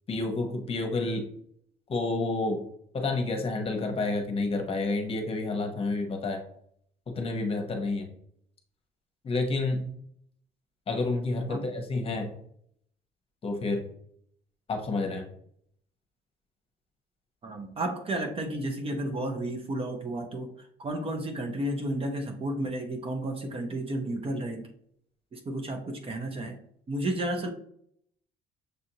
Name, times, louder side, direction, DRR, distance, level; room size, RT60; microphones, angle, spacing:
voice 1, 0.1-1.2 1.9-2.6 2.9-6.4 7.2-8.1 9.2-9.9 10.9-12.3 13.4-13.8 14.7-15.2, left 3 dB, 35° left, 3 dB, 0.9 m, -29 dB
voice 2, 17.4-24.7 25.3-26.6 26.9-27.5, right 1 dB, 35° right, 5 dB, 0.7 m, -32 dB
6.5 x 2.5 x 2.8 m, 0.67 s
cardioid pair, 110°, 17 cm